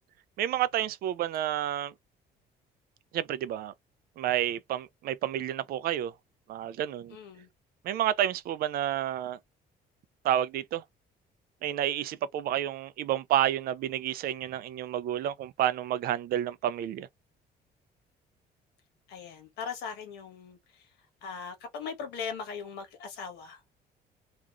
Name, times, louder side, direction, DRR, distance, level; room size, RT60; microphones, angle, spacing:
voice 1, 0.4-1.9 3.1-3.7 4.2-6.1 6.5-7.2 7.8-9.4 10.2-10.8 11.6-17.1, right 11 dB, 65° right, 0.4 m, -30 dB
voice 2, 7.1-7.5 19.1-20.9 21.2-23.6, left 6 dB, 85° left, 1.2 m, -39 dB
2.9 x 2.4 x 2.4 m
cardioid pair, 110°, 17 cm